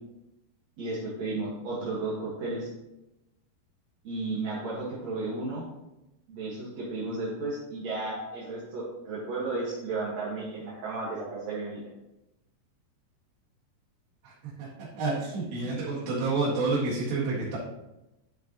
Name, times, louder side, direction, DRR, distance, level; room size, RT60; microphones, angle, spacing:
voice 1, 0.8-2.7 4.0-5.6 6.3-11.8, right 3 dB, 55° right, -8 dB, 2.2 m, -33 dB
voice 2, 15.0-17.6, right 3 dB, 75° right, -10 dB, 3.9 m, -29 dB
12.0 x 5.6 x 2.9 m, 0.95 s
omnidirectional pair, 4.8 m